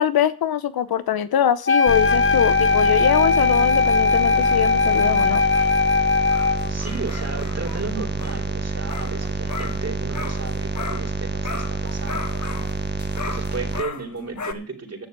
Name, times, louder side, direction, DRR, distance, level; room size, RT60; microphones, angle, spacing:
voice 1, 0.0-5.4, left 10 dB, 85° left, 0.9 m, -23 dB
Wind instrument woodwind instrument, 1.7-6.7, left 4 dB, 35° left, 1.0 m, -19 dB
sound 1, 1.8-13.8, right 3 dB, 30° right, 1.2 m, -28 dB
sound 2, 4.1-11.2 11.4-14.5, left 5 dB, 55° left, 1.4 m, -37 dB
voice 2, 6.7-12.6 13.2-15.1, right 3 dB, 45° right, 4.0 m, -34 dB
11.0 x 7.3 x 8.4 m
cardioid pair, 45°, 36 cm